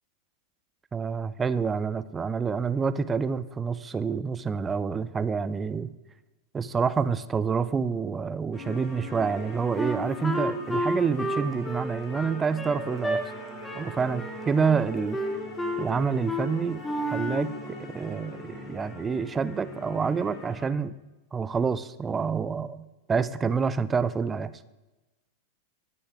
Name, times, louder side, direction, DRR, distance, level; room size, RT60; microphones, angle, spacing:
voice 1, 0.9-5.9 6.5-13.2 13.7-15.2 15.8-16.8 17.1-17.5 17.9-21.0 21.3-24.5, right 5 dB, 15° right, 15 dB, 0.5 m, -27 dB
sound 1, 8.5-20.6, left 1 dB, 30° left, 3.0 m, -41 dB
Wind instrument woodwind instrument, 9.8-13.2 13.6-13.9 14.2-14.8 15.1-15.9 16.3-16.5 16.8-17.5, equal, 10° left, 1.2 m, -30 dB
20.0 x 6.9 x 3.4 m, 1.1 s
figure-of-eight pair, 90°, 0 cm